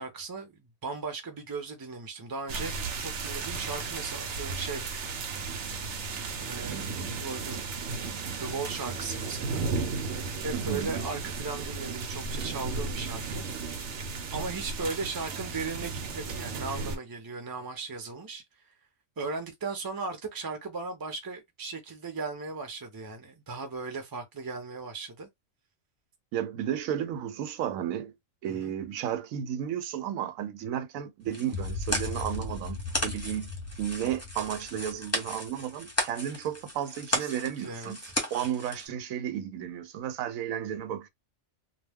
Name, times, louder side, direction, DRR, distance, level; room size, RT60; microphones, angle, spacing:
voice 1, 0.0-2.7 3.0-4.8 6.4-7.6 8.4-9.6 10.4-13.4 14.3-18.4 19.2-25.3 28.4-28.7 37.1-38.1, right 4 dB, 20° right, 0.6 m, -37 dB
sound 1, 2.5-17.0, right 4 dB, 65° right, 0.9 m, -34 dB
voice 2, 10.5-10.9 26.3-28.1 28.4-33.5 33.8-38.0 38.3-41.1, right 10 dB, 90° right, 1.0 m, -33 dB
sound 2, 31.3-38.9, left 1 dB, 15° left, 0.8 m, -35 dB
sound 3, 31.5-35.9, left 3 dB, 70° left, 0.5 m, -38 dB
2.3 x 2.2 x 3.5 m
omnidirectional pair, 1.4 m